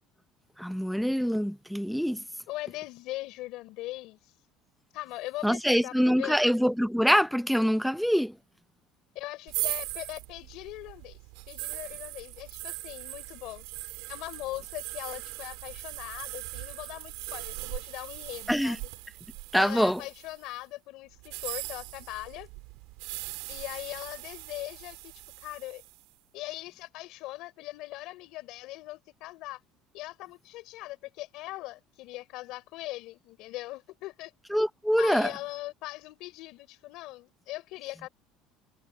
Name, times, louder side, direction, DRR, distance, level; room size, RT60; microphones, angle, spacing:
voice 1, 0.6-2.2 5.4-8.4 18.5-18.8 19.5-20.0 34.5-35.3, equal, ahead, 0.6 m, -25 dB
voice 2, 2.5-4.2 4.9-6.4 9.1-11.2 11.5-13.6 14.1-18.9 19.5-22.5 23.5-25.1 25.4-25.8 26.3-29.6 29.9-34.3 35.0-38.1, left 18 dB, 65° left, 4.9 m, -40 dB
sound 1, 9.5-20.4 21.2-26.0, right 27 dB, 85° right, 4.7 m, -40 dB
cardioid pair, 150°, 0 cm